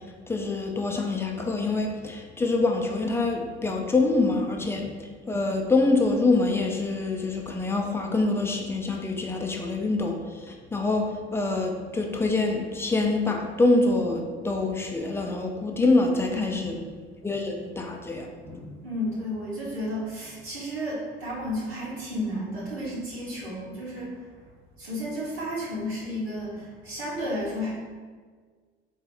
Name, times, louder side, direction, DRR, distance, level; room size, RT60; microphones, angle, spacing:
voice 1, 0.3-4.9 5.3-16.7 17.2-18.3 18.5-18.6, left 3 dB, 10° left, 2 dB, 0.3 m, -25 dB
voice 2, 16.2-16.8 18.4-24.1 24.8-27.7, equal, 80° right, -8 dB, 1.0 m, -32 dB
3.8 x 2.7 x 2.4 m, 1.5 s
figure-of-eight pair, 55°, 31 cm